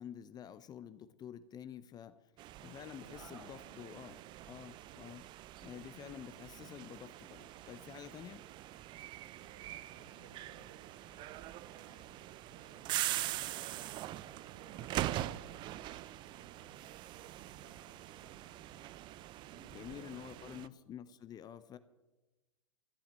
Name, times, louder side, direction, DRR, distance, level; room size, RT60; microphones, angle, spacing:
voice 1, 0.0-2.3 2.6-4.2 4.5-5.3 5.6-8.5 19.7-21.8, left 9 dB, 20° left, 14 dB, 0.7 m, -49 dB
sound 1, 2.4-20.7, right 14 dB, 25° right, 0.4 m, -43 dB
voice 2, 2.6-4.0 9.4-20.5, right 3 dB, 75° right, 0 dB, 5.7 m, -61 dB
14.5 x 8.7 x 8.1 m, 1.1 s
figure-of-eight pair, 100°, 18 cm